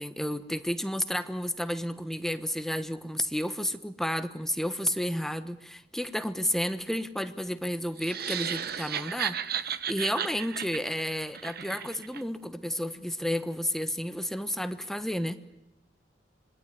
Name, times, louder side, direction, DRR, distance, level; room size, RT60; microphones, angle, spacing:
voice 1, 0.0-15.4, equal, ahead, 11 dB, 1.1 m, -31 dB
sound 1, 8.0-12.2, right 9 dB, 55° right, 1.1 m, -34 dB
26.0 x 21.5 x 9.8 m, 0.90 s
head